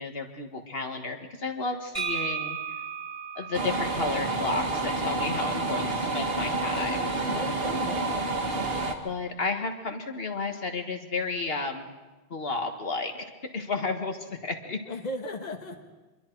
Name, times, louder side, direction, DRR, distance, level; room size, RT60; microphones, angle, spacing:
voice 1, 0.0-2.6 3.4-7.3 9.0-11.8 12.3-14.8, left 3 dB, 65° left, 4 dB, 1.8 m, -32 dB
sound 1, 1.9-5.7, right 7 dB, 30° right, 4.5 m, -36 dB
sound 2, 3.5-9.0, right 2 dB, 65° right, 1.9 m, -29 dB
voice 2, 7.3-8.3 14.9-15.8, left 1 dB, 40° left, 3 dB, 1.5 m, -36 dB
25.5 x 23.0 x 4.6 m, 1.2 s
omnidirectional pair, 1.1 m